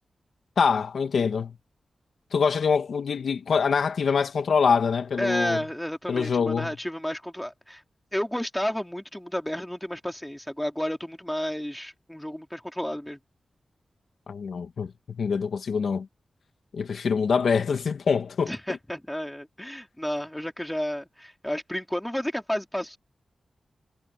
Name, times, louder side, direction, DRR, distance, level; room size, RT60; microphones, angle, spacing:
voice 1, 0.6-1.5 2.3-5.6 6.1-6.7 14.3-14.9 15.2-16.1 16.7-18.5, left 6 dB, 80° left, 1.3 m, -24 dB
voice 2, 5.2-7.8 8.1-13.2 18.4-23.0, equal, 5° left, 3.8 m, -31 dB
cardioid pair, 60°, 0 cm